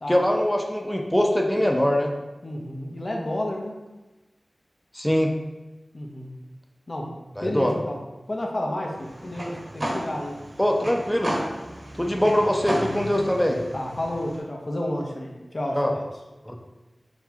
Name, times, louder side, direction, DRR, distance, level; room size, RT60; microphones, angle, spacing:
voice 1, 0.1-2.1 4.9-5.3 7.4-7.8 10.6-11.4 12.0-13.6 15.7-15.9 16.4-16.5, equal, 5° left, 1 dB, 0.6 m, -22 dB
voice 2, 2.4-3.7 5.9-6.3 6.9-7.1 7.4-8.0 8.3-10.4 13.7-16.1, left 1 dB, 50° left, 0 dB, 0.8 m, -31 dB
sound 1, 8.9-14.4, equal, 65° right, 1.4 m, -33 dB
5.9 x 2.3 x 2.8 m, 1.1 s
cardioid pair, 40°, 0 cm